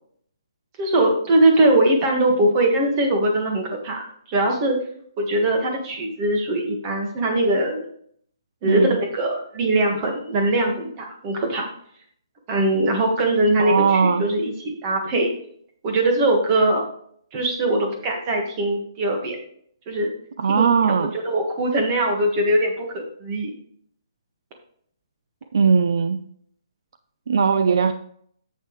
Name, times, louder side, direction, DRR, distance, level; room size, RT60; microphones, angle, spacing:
voice 1, 0.8-4.8 5.2-7.9 8.6-11.7 12.5-15.3 15.8-16.8 17.3-19.4 19.9-20.1 20.6-23.5, right 1 dB, 20° right, 2 dB, 1.5 m, -21 dB
voice 2, 8.6-9.0 13.6-14.3 20.4-21.1 25.5-26.2 27.3-27.9, right 6 dB, 50° right, 10 dB, 0.5 m, -19 dB
8.9 x 8.3 x 3.1 m, 0.63 s
hypercardioid pair, 180°, 3 cm